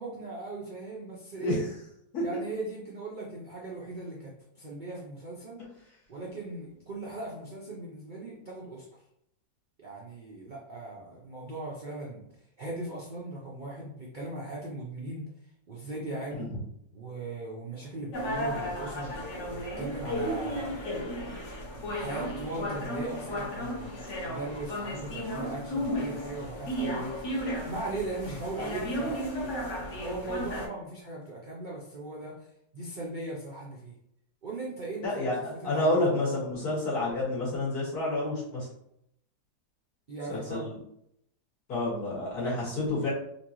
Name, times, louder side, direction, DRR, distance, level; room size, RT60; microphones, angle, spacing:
voice 1, 0.0-1.6 2.2-5.6 6.1-8.8 9.8-12.3 12.6-15.2 15.7-16.5 16.9-19.1 19.5-21.1 21.7-29.6 30.0-33.9 34.4-36.0 40.1-40.7, right 2 dB, 65° right, -4 dB, 0.4 m, -39 dB
sound 1, 18.1-30.7, equal, 55° left, 1.0 m, -34 dB
voice 2, 35.0-35.3 35.6-38.7 40.3-40.7 41.7-43.1, left 1 dB, 70° left, -7 dB, 2.2 m, -29 dB
4.2 x 2.6 x 2.9 m, 0.76 s
omnidirectional pair, 1.7 m